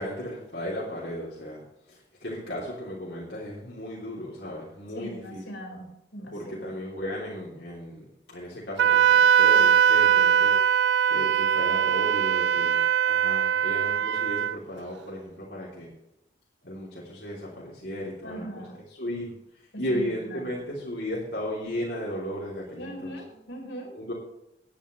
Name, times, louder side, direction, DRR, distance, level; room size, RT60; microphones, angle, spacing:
voice 1, 0.0-1.6 1.9-5.4 6.3-8.0 8.3-10.6 11.1-12.8 13.1-15.9 16.6-18.6 19.0-19.3 19.8-23.1 23.9-24.1, equal, 65° left, -6 dB, 3.4 m, -35 dB
voice 2, 4.9-6.7 18.2-18.8 19.7-20.5 22.7-23.9, right 1 dB, 90° left, 2 dB, 4.8 m, -40 dB
Wind instrument woodwind instrument, 8.8-14.6, right 8 dB, 75° right, 0.4 m, -21 dB
18.5 x 10.0 x 3.3 m, 0.84 s
head